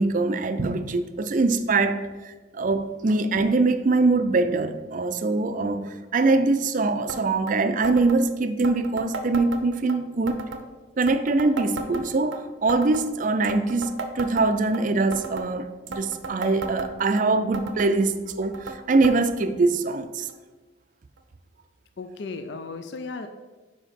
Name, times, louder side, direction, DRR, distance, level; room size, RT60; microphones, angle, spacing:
voice 1, 0.0-10.4 11.0-20.3, right 3 dB, 45° right, 0.4 m, -23 dB
sound 1, 7.1-7.2 7.5-7.6 7.8-8.2 8.6-10.0 10.3-10.6 11.0-12.4 12.7-13.1 13.4-14.8 15.1-15.5 15.9-17.2 17.5-17.9 18.3-18.8 19.0-19.2 19.4-19.5 20.3-20.4 21.2-21.3, right 3 dB, 85° right, 0.7 m, -34 dB
voice 2, 22.0-23.3, left 3 dB, 65° left, 0.4 m, -35 dB
5.0 x 5.0 x 5.7 m
head